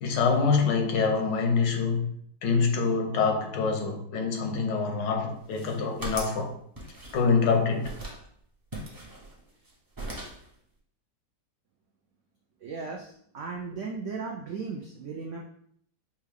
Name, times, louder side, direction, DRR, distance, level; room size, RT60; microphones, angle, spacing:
voice 1, 0.0-2.1 2.4-6.5 7.1-7.9, left 5 dB, 90° left, 3 dB, 1.4 m, -25 dB
sound 1, 5.4-6.4 6.8-7.5 7.8-8.2 8.7-9.7 9.9-10.5, right 1 dB, 30° right, 0.3 m, -39 dB
voice 2, 12.6-15.4, right 4 dB, 80° right, 0 dB, 0.6 m, -36 dB
5.4 x 2.4 x 3.3 m, 0.64 s
omnidirectional pair, 1.9 m